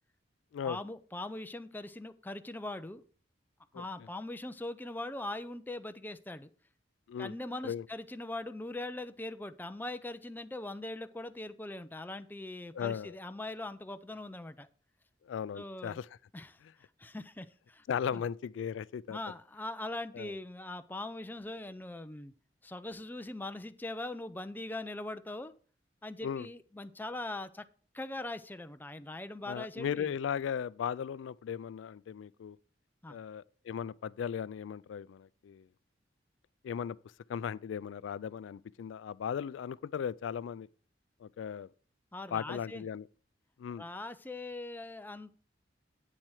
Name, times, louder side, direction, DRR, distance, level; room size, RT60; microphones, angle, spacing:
voice 1, 0.6-3.0 3.7-6.5 7.2-14.7 15.5-16.0 16.3-16.6 17.0-17.8 18.1-18.2 19.1-22.3 22.6-25.5 26.0-27.6 27.9-30.1 33.0-33.2 42.1-42.8 43.8-45.3, left 2 dB, 10° left, 0.5 m, -41 dB
voice 2, 12.7-13.2 15.3-16.1 17.9-19.2 20.1-20.3 26.2-26.5 29.5-32.6 33.1-35.7 36.6-37.0 37.3-40.7 41.2-41.7 42.3-43.1 43.6-43.8, left 8 dB, 85° left, 0.3 m, -37 dB
8.8 x 7.5 x 4.8 m
head